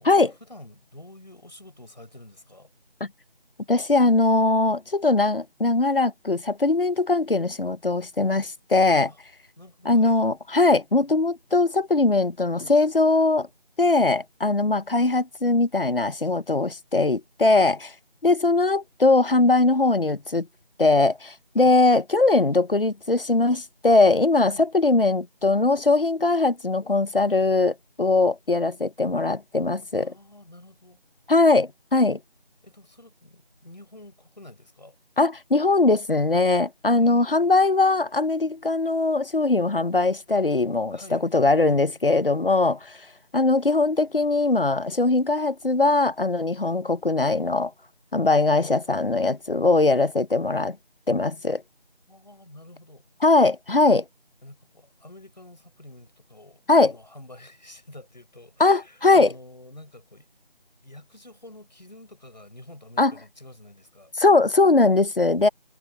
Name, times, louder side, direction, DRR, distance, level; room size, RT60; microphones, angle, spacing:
voice 1, 0.0-2.7 9.1-9.2 9.6-10.2 17.6-17.8 21.6-21.7 24.5-24.7 30.0-31.0 32.6-34.9 37.0-37.6 40.9-41.2 52.1-53.0 54.4-60.3 60.8-64.1, left 1 dB, 45° left, 6.6 m, -47 dB
voice 2, 3.7-9.1 9.9-13.5 13.8-17.8 18.2-20.5 20.8-30.1 31.3-32.2 35.2-43.0 43.3-47.7 48.1-50.8 51.1-51.6 53.2-54.0 56.7-56.9 58.6-59.3 63.0-63.1 64.2-65.5, left 3 dB, 60° left, 0.9 m, -21 dB
figure-of-eight pair, 175°, 31 cm